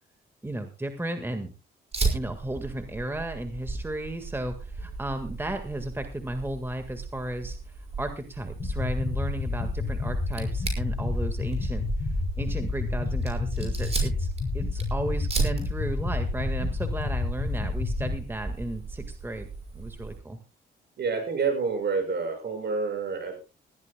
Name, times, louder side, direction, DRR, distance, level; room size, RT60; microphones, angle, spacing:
voice 1, 0.4-1.5 2.1-7.6 8.0-12.1 12.4-14.3 14.5-19.5 19.7-20.4, right 1 dB, 10° right, 7 dB, 1.7 m, -34 dB
Fire, 1.9-20.2, right 4 dB, 30° right, 5.8 m, -36 dB
sound 1, 8.6-18.1, left 3 dB, 30° left, 5.8 m, -29 dB
voice 2, 21.0-23.4, right 5 dB, 60° right, 5 dB, 6.1 m, -28 dB
20.5 x 15.0 x 2.2 m, 0.29 s
cardioid pair, 90°, 20 cm